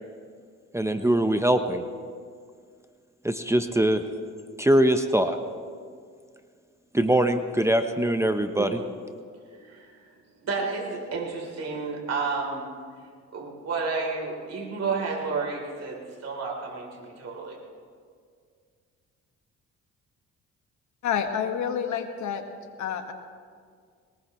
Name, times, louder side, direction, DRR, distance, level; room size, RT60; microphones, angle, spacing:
voice 1, 0.7-1.8 3.2-4.0 4.6-5.4 6.9-8.8, right 1 dB, 10° right, 7 dB, 0.8 m, -22 dB
voice 2, 9.5-10.0 10.4-12.7 13.3-17.6, right 4 dB, 55° right, -1 dB, 3.6 m, -31 dB
voice 3, 21.0-22.4 22.8-23.1, left 8 dB, 70° left, 6 dB, 1.6 m, -28 dB
21.5 x 19.0 x 3.1 m, 2.1 s
cardioid pair, 90°, 30 cm